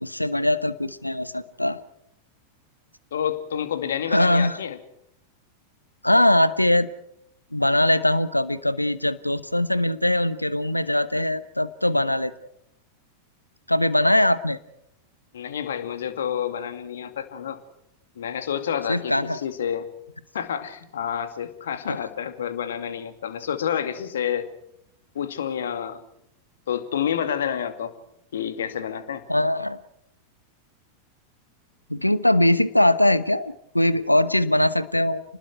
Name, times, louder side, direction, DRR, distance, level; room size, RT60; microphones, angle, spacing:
voice 1, 0.0-1.8 4.1-4.6 6.0-6.9 7.5-12.3 13.7-14.6 18.9-19.4 21.9-22.0 29.3-29.8 31.9-35.2, left 1 dB, 85° left, 16 dB, 1.0 m, -21 dB
voice 2, 3.1-4.8 15.3-17.6 18.2-19.9 20.3-24.5 25.1-26.0 26.7-27.9 28.3-29.2, left 8 dB, 65° left, 9 dB, 2.4 m, -29 dB
30.0 x 20.0 x 4.8 m, 0.75 s
figure-of-eight pair, 90°, 0 cm